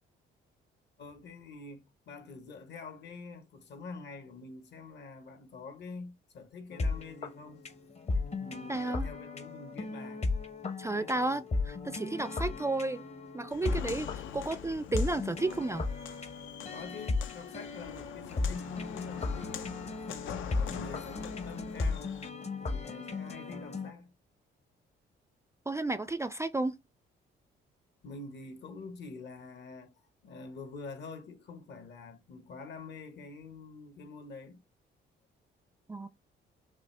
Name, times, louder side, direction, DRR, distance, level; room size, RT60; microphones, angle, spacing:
voice 1, 1.0-7.6 8.4-10.3 10.9-11.6 16.7-19.8 20.5-22.1 22.6-24.1 28.0-30.0 30.2-34.6, left 4 dB, 60° left, 1.3 m, -46 dB
sound 1, 6.7-23.9, left 3 dB, 35° left, 0.8 m, -36 dB
voice 2, 8.7-9.1 10.8-11.4 11.7-13.0 13.3-15.9 25.7-26.7 35.9-36.1, right 2 dB, 15° right, 0.3 m, -32 dB
Walk footsteps, 13.5-22.3, left 9 dB, 80° left, 0.6 m, -44 dB
6.1 x 2.5 x 3.3 m
cardioid pair, 90°, 20 cm